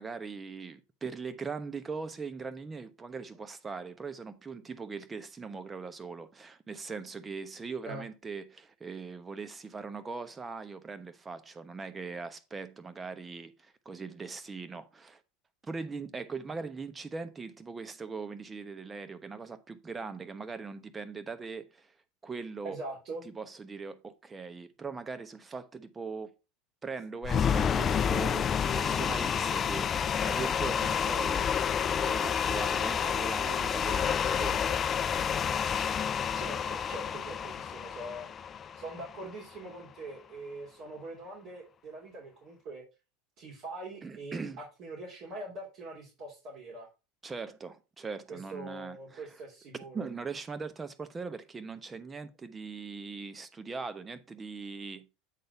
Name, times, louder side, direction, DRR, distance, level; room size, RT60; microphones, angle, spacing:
voice 1, 0.0-15.2 15.6-21.9 22.2-22.8 23.2-26.3 26.8-31.5 31.9-34.8 44.0-44.6 47.2-49.3 49.9-55.1, right 4 dB, 20° right, 1.0 m, -40 dB
voice 2, 22.6-23.2 36.3-38.3 38.7-42.8 43.4-46.9 48.3-50.1, right 2 dB, 55° right, 2.9 m, -43 dB
sound 1, 27.2-39.4, left 7 dB, 35° left, 0.5 m, -29 dB
8.5 x 4.0 x 4.6 m
hypercardioid pair, 90°, 0 cm